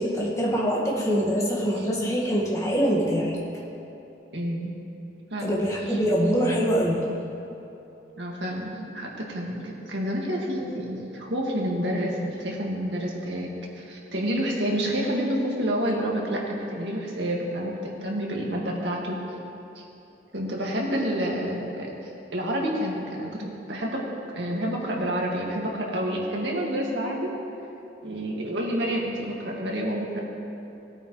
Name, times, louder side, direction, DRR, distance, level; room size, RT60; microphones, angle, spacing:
voice 1, 0.0-3.4 5.4-7.0, equal, 20° left, -4 dB, 1.7 m, -24 dB
voice 2, 4.3-4.7 5.3-5.6 5.9-6.0 8.2-19.2 19.8-19.9 20.3-21.9 22.3-24.0 24.3-27.3 28.0-30.2, equal, 85° right, -2 dB, 1.9 m, -29 dB
18.5 x 8.8 x 3.2 m, 2.9 s
head